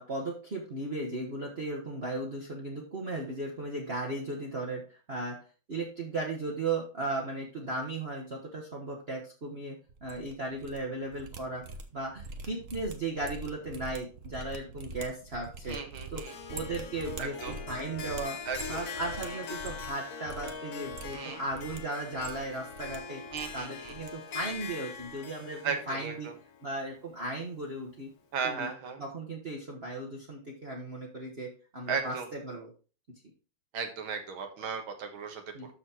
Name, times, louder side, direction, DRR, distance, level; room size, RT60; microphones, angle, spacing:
voice 1, 0.0-5.4 5.7-11.6 11.9-15.8 16.1-16.2 16.5-17.3 17.7-18.4 18.7-23.2 23.5-26.3 26.6-28.1 28.4-28.7 29.0-32.7 35.5-35.7, right 2 dB, 30° right, -1 dB, 1.4 m, -36 dB
sound 1, 9.9-10.8 11.0-20.0 20.2-20.5 20.8-21.8 22.1-23.0 23.2-24.1 24.4-24.7 25.0-25.2, right 3 dB, 50° right, 1.1 m, -44 dB
voice 2, 15.7-16.3 17.2-17.5 18.5-18.9 19.2-19.4 21.1-21.8 23.3-24.0 25.6-26.3 28.3-29.0 31.9-32.3 33.7-35.4, right 6 dB, 70° right, 5 dB, 2.2 m, -36 dB
Harp, 16.3-27.5, left 5 dB, 55° left, 1.2 m, -42 dB
12.5 x 4.3 x 4.4 m, 0.36 s
omnidirectional pair, 2.4 m